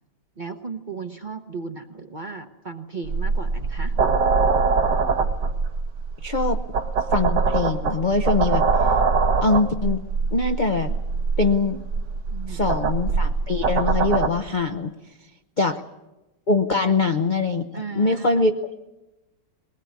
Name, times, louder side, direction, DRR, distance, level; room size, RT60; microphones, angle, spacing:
voice 1, 0.4-4.0 12.3-12.8 17.7-18.5, right 4 dB, 35° right, 6 dB, 0.8 m, -35 dB
sound 1, 3.1-14.3, right 4 dB, 70° right, 1.8 m, -23 dB
voice 2, 6.2-6.6 7.1-8.7 9.4-10.0 10.3-10.9 11.4-11.8 12.5-14.9 15.6-15.8 16.5-17.6 17.9-18.5, left 3 dB, 45° left, 6 dB, 0.6 m, -22 dB
21.5 x 19.5 x 9.5 m, 1.0 s
omnidirectional pair, 2.0 m